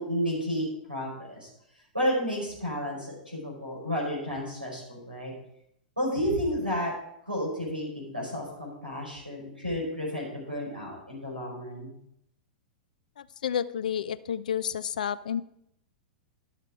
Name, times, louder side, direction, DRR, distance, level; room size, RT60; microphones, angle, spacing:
voice 1, 0.0-1.5 1.9-5.3 6.0-6.9 7.3-12.0, equal, 90° right, -3 dB, 4.8 m, -31 dB
voice 2, 13.2-15.4, left 8 dB, 60° left, 16 dB, 0.4 m, -30 dB
11.0 x 6.5 x 4.9 m, 0.76 s
figure-of-eight pair, 100°, 5 cm